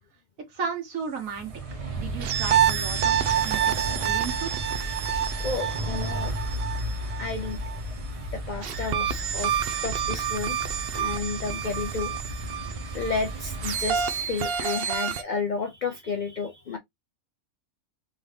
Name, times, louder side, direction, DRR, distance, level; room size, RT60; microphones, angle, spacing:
voice 1, 0.5-1.5 2.0-3.2 3.4-3.6 4.0-4.5, right 5 dB, 80° right, 1.7 m, -33 dB
sound 1, 1.2-14.8, right 1 dB, 30° right, 0.9 m, -34 dB
sound 2, 2.2-7.8 8.6-15.2, right 9 dB, 60° right, 0.7 m, -28 dB
voice 2, 5.4-6.3 7.1-7.6 8.3-9.5 9.8-10.6 10.9-12.1 12.9-16.8, left 4 dB, 65° left, 0.4 m, -31 dB
3.8 x 2.7 x 3.3 m
omnidirectional pair, 1.4 m